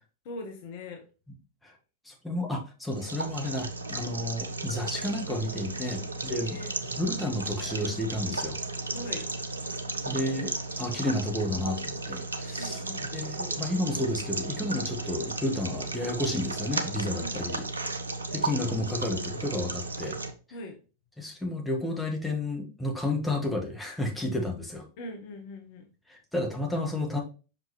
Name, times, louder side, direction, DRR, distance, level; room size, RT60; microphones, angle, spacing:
voice 1, 0.2-1.0 6.3-6.7 8.9-9.3 12.6-13.0 17.2-17.7 20.5-20.7 25.0-25.9, left 1 dB, 50° left, 4 dB, 1.0 m, -41 dB
voice 2, 2.1-6.6 7.0-8.6 10.1-12.8 13.1-17.6 18.3-20.2 21.2-24.8 26.1-27.2, left 1 dB, 5° left, 0 dB, 1.6 m, -31 dB
sound 1, 2.9-20.3, right 3 dB, 80° right, 0.7 m, -34 dB
5.8 x 5.3 x 3.1 m, 0.34 s
figure-of-eight pair, 90°, 0 cm